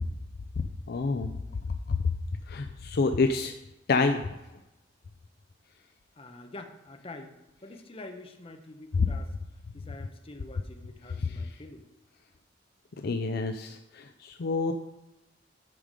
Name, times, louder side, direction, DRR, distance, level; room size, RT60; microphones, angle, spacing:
voice 1, 0.9-1.3 1.9-2.0 2.5-3.5 3.9-4.3 8.9-9.1 11.2-11.4 13.0-14.7, left 4 dB, 60° left, 7 dB, 0.5 m, -27 dB
voice 2, 6.1-9.3 9.7-11.9, left 2 dB, 30° left, 5 dB, 0.9 m, -46 dB
11.0 x 4.9 x 5.3 m, 0.96 s
head